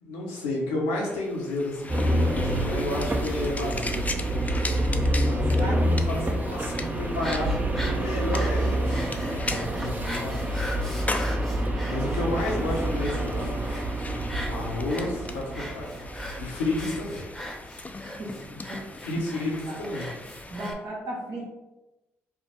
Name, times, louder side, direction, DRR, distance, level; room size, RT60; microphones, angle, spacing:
voice 1, 0.0-4.2 5.2-9.1 9.5-10.7 11.9-13.9 14.5-16.0 16.4-17.2 18.1-18.2 19.0-20.1 20.4-20.5, left 2 dB, 90° left, -3 dB, 0.9 m, -31 dB
sound 1, 0.9-20.7, left 3 dB, 25° left, 0.4 m, -39 dB
sound 2, 1.9-17.1, right 1 dB, 25° right, 0.7 m, -27 dB
voice 2, 5.5-6.0 18.2-18.8 19.7-19.8 20.5-21.4, right 1 dB, 65° right, -7 dB, 1.1 m, -35 dB
sound 3, 7.1-20.7, equal, 5° left, 0.9 m, -40 dB
3.5 x 2.1 x 4.3 m, 1.0 s
hypercardioid pair, 45°, 6 cm